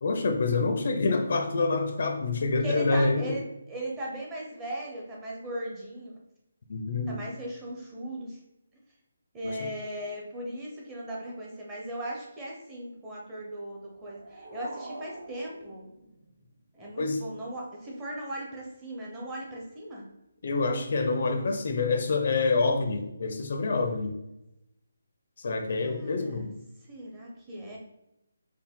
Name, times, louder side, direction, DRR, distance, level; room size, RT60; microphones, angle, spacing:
voice 1, 0.0-3.3 6.7-7.2 9.4-9.7 17.0-17.2 20.4-24.2 25.4-26.5, left 3 dB, 45° left, 6 dB, 0.5 m, -27 dB
voice 2, 2.6-6.1 7.1-8.4 9.3-15.9 16.7-20.1 25.8-26.5 26.9-27.8, right 1 dB, 10° right, -3 dB, 0.6 m, -38 dB
sound 1, 13.8-16.8, right 2 dB, 60° right, 0.9 m, -45 dB
4.5 x 2.1 x 3.6 m, 0.87 s
hypercardioid pair, 175°, 0 cm